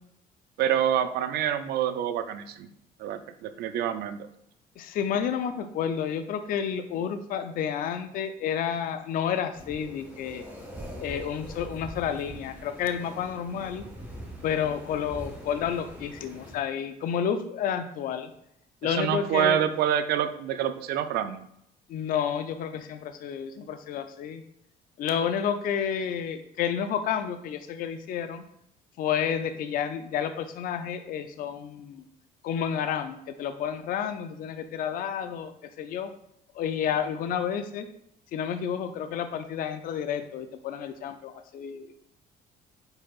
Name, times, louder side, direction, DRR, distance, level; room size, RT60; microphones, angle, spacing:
voice 1, 0.6-2.7 3.0-4.2 19.0-21.5, right 10 dB, 70° right, 10 dB, 0.4 m, -27 dB
voice 2, 4.8-10.5 11.0-13.8 14.4-18.3 18.8-19.6 21.9-24.4 25.0-28.4 29.0-32.0 32.4-36.1 36.5-37.9 38.3-41.9, left 8 dB, 55° left, 8 dB, 0.4 m, -30 dB
sound 1, 9.5-16.5, equal, 10° right, 1.3 m, -43 dB
4.8 x 4.5 x 2.4 m, 0.74 s
cardioid pair, 110°, 17 cm